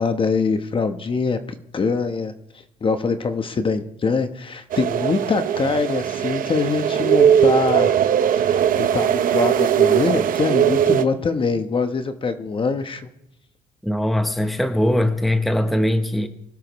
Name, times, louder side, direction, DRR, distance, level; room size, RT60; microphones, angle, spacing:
voice 1, 0.0-2.3 2.8-7.9 8.4-13.1, left 4 dB, 30° left, 9 dB, 1.1 m, -23 dB
sound 1, 4.7-11.0, right 9 dB, 55° right, 0.9 m, -19 dB
voice 2, 13.8-16.3, left 1 dB, ahead, 8 dB, 0.9 m, -21 dB
24.0 x 12.0 x 3.2 m, 0.81 s
cardioid pair, 110°, 17 cm